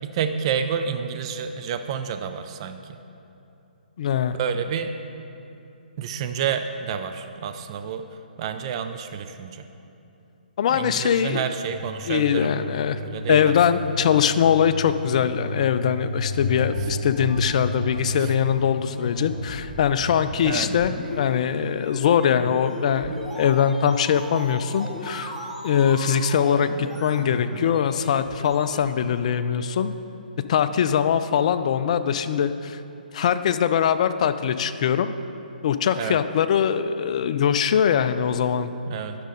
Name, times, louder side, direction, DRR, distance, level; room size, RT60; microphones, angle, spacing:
voice 1, 0.0-2.9 4.3-4.9 6.0-8.0 8.4-9.7 10.7-12.5 13.0-13.5 16.6-17.0 18.2-18.3 20.4-20.7 22.5-22.6 36.0-36.2 38.9-39.2, right 7 dB, 35° right, 8 dB, 0.4 m, -29 dB
voice 2, 4.0-4.4 10.6-11.4 12.1-13.0 13.3-25.3 25.6-29.9 30.4-32.8 33.1-35.1 35.6-38.7, left 8 dB, 45° left, 11 dB, 0.4 m, -22 dB
sound 1, 11.7-28.9, left 1 dB, ahead, 0.7 m, -35 dB
sound 2, 16.2-21.2 21.6-21.7, left 4 dB, 60° left, 1.3 m, -35 dB
10.0 x 6.4 x 3.9 m, 2.8 s
figure-of-eight pair, 140°, 5 cm